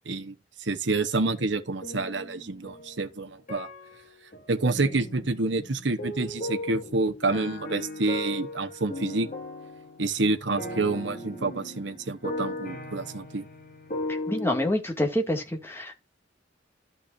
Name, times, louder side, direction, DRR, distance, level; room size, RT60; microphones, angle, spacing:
voice 1, 0.6-3.7 4.5-9.3 10.0-13.4, right 3 dB, 65° right, 1.2 m, -28 dB
sound 1, 1.4-3.1 3.5-14.7, left 1 dB, 45° left, 2.5 m, -37 dB
voice 2, 14.3-15.9, left 1 dB, 15° left, 2.2 m, -27 dB
13.5 x 5.9 x 2.6 m
head